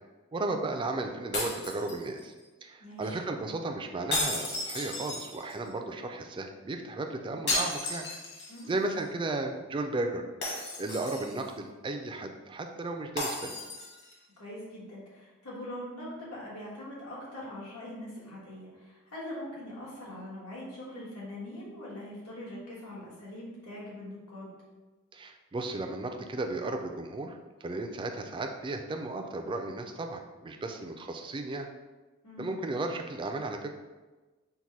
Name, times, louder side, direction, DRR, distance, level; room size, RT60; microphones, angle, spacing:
voice 1, 0.3-2.3 2.6-8.1 8.7-10.2 10.8-13.5 25.1-31.7 32.4-33.7, right 2 dB, 25° right, 4 dB, 0.3 m, -34 dB
sound 1, 1.3-2.4 4.1-5.7 7.5-8.7 9.0-9.1 10.4-11.5 13.2-14.1, left 2 dB, 50° left, 1.2 m, -34 dB
voice 2, 2.8-3.2 8.5-8.7 14.4-24.5 32.2-32.6, left 1 dB, 90° left, -6 dB, 1.4 m, -42 dB
4.6 x 2.1 x 4.1 m, 1.2 s
head